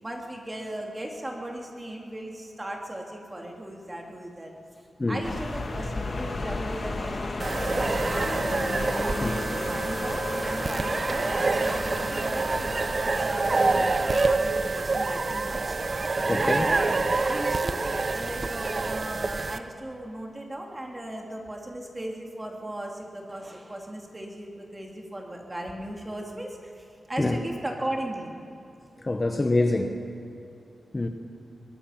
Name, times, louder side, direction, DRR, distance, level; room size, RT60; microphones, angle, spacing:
voice 1, 0.0-4.6 5.1-8.6 9.0-15.8 16.4-16.9 17.2-28.4 29.0-29.1, right 1 dB, 20° right, 0 dB, 2.8 m, -37 dB
sound 1, 5.2-14.4, left 2 dB, 45° left, 2.3 m, -33 dB
sound 2, 7.4-19.6, right 3 dB, 40° right, 0.8 m, -27 dB
voice 2, 16.3-16.7 27.2-27.4 29.0-30.0 30.9-31.1, left 2 dB, 25° left, 5 dB, 1.1 m, -25 dB
22.5 x 21.0 x 5.9 m, 2.7 s
wide cardioid pair, 105°, 0 cm